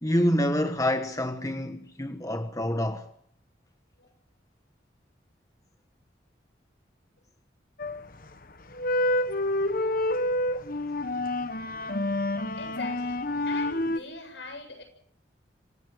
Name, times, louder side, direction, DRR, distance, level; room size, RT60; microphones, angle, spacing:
voice 1, 0.0-3.1, equal, 20° left, 1.3 m, -27 dB
sound 1, 7.8-8.2 8.7-14.0, left 1 dB, 50° left, 1.2 m, -28 dB
voice 2, 12.6-14.8, left 3 dB, 75° left, 7.9 m, -42 dB
26.0 x 17.0 x 7.9 m
head